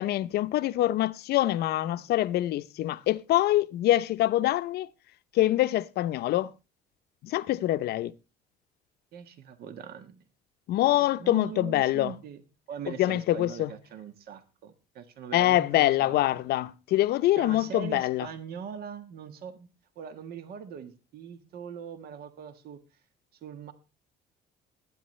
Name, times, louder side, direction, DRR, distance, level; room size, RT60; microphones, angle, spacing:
voice 1, 0.0-4.9 5.3-6.5 7.2-8.1 10.7-12.1 13.0-13.7 15.3-18.3, left 14 dB, 70° left, 0.6 m, -25 dB
voice 2, 1.7-2.1 9.1-10.2 10.9-12.4 12.7-16.1 17.4-19.7 19.9-22.8 23.3-23.7, right 7 dB, 65° right, 1.4 m, -41 dB
20.0 x 9.4 x 3.2 m
cardioid pair, 110°, 17 cm